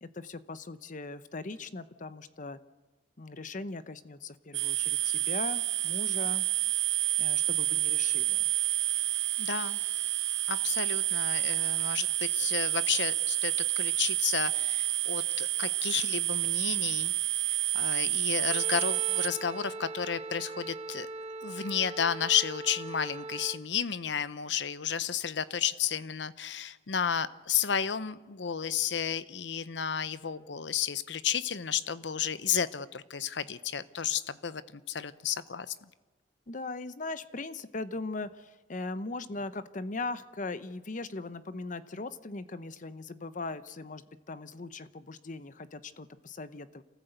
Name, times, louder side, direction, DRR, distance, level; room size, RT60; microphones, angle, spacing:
voice 1, 0.0-2.6 3.2-6.4 7.2-8.5 36.5-46.8, left 3 dB, 45° left, 13 dB, 0.8 m, -39 dB
sound 1, 4.5-19.3, right 17 dB, 75° right, 0.8 m, -29 dB
voice 2, 9.4-9.8 10.5-17.1 17.7-21.1 21.4-35.9, left 8 dB, 75° left, 15 dB, 0.8 m, -32 dB
Wind instrument woodwind instrument, 18.5-23.6, right 3 dB, 35° right, 1.2 m, -41 dB
27.5 x 14.5 x 8.0 m, 1.3 s
head